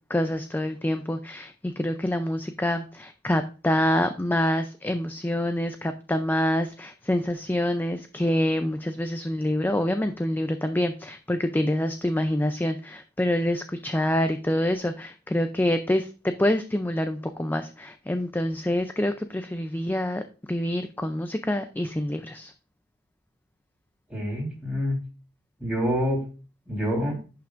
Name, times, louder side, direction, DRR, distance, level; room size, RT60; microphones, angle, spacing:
voice 1, 0.1-20.2 20.5-22.5, left 1 dB, 10° left, 8 dB, 0.4 m, -26 dB
voice 2, 24.1-25.0 25.6-26.3 26.7-27.2, equal, 5° right, -2 dB, 3.7 m, -27 dB
11.0 x 5.8 x 2.5 m, 0.35 s
head